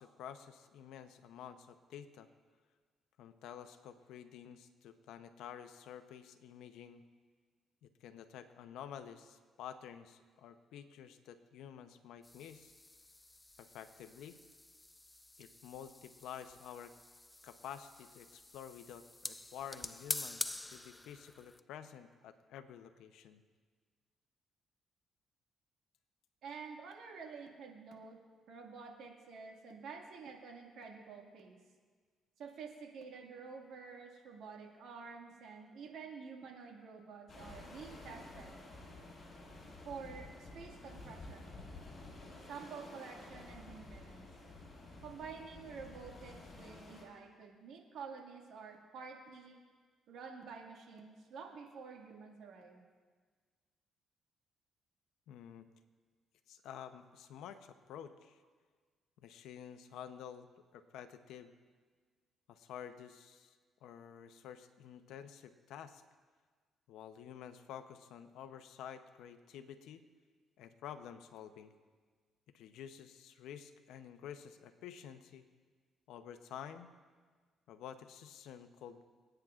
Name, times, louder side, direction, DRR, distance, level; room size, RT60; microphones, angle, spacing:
voice 1, 0.0-2.3 3.2-7.0 7.8-12.7 13.6-14.4 15.4-16.9 17.4-23.4 55.3-55.6 56.5-58.4 59.2-60.5 60.7-61.5 62.5-63.6 63.8-66.0 66.9-70.0 70.6-71.7 72.5-75.4 76.1-76.9 77.7-79.0, left 9 dB, 85° left, 9 dB, 0.7 m, -50 dB
sound 1, 12.2-21.6, left 2 dB, 15° left, 0.4 m, -47 dB
voice 2, 26.4-28.2 28.5-31.6 32.4-38.6 39.9-41.6 42.4-44.3 45.0-49.6 50.1-52.8, right 5 dB, 75° right, 1 dB, 2.0 m, -49 dB
sound 2, 37.3-47.0, left 2 dB, 40° left, 4.4 m, -52 dB
26.5 x 9.1 x 2.5 m, 1.5 s
cardioid pair, 90°, 0 cm